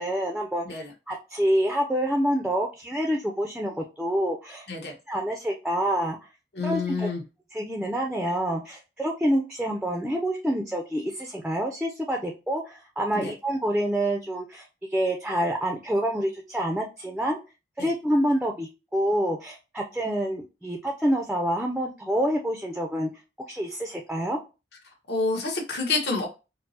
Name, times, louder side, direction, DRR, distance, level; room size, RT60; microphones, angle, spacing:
voice 1, 0.0-4.7 5.1-6.2 6.6-7.1 7.5-17.4 17.8-23.1 23.5-24.4, equal, 5° right, 1 dB, 0.4 m, -27 dB
voice 2, 6.5-7.2 13.1-13.3 17.8-17.9 25.1-26.3, left 3 dB, 65° left, 1 dB, 1.1 m, -28 dB
4.4 x 2.0 x 2.7 m, 0.29 s
head